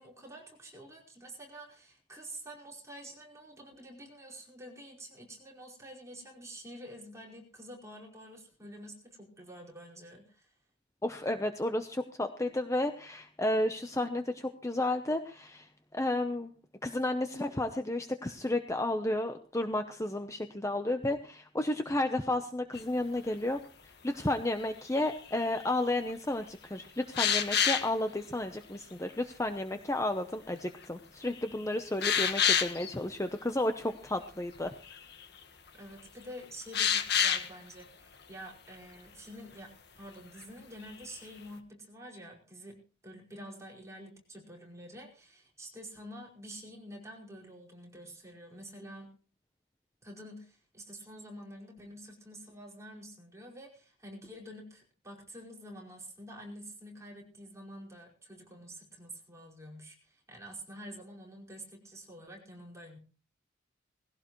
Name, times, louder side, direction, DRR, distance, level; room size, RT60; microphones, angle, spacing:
voice 1, 0.0-10.5 35.7-49.1 50.0-63.0, equal, 15° right, -2 dB, 5.1 m, -48 dB
voice 2, 11.0-16.5 16.8-34.7, left 1 dB, 15° left, 7 dB, 0.8 m, -32 dB
sound 1, 22.7-22.8 25.1-25.7 27.1-27.9 30.8-30.9 31.4-31.5 32.0-32.9 34.6-34.7 34.8-35.3 36.7-37.5 40.9-41.1, left 8 dB, 60° left, 1.5 m, -27 dB
19.5 x 16.5 x 3.1 m, 0.38 s
head